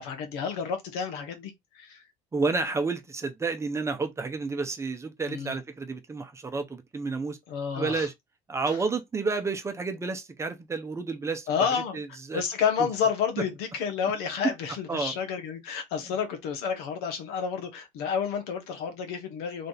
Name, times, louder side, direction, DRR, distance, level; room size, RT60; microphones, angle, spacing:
voice 1, 0.0-2.0 5.3-5.6 7.5-8.1 8.6-8.8 11.5-19.7, left 7 dB, 85° left, 1.3 m, -30 dB
voice 2, 2.3-7.4 7.7-8.1 8.5-11.5 11.9-12.4 14.4-14.5 14.9-15.1, right 4 dB, 15° right, 0.7 m, -30 dB
3.3 x 2.6 x 4.0 m
cardioid pair, 130°, 16 cm